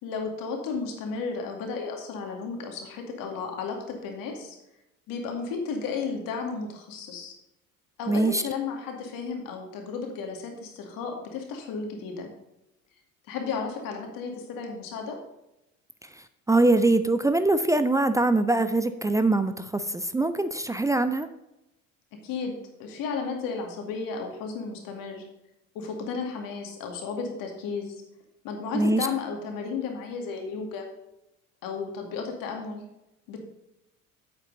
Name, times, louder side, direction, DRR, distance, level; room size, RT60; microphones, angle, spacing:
voice 1, 0.0-4.6 5.1-7.3 8.0-12.3 13.3-15.2 22.2-25.2 25.7-27.9 28.4-30.9 31.6-32.8 33.3-33.4, left 5 dB, 55° left, 3 dB, 2.3 m, -33 dB
voice 2, 8.1-8.4 16.5-21.3 28.7-29.1, right 2 dB, 10° right, 10 dB, 0.4 m, -23 dB
8.8 x 8.1 x 4.0 m, 0.89 s
figure-of-eight pair, 60°, 40 cm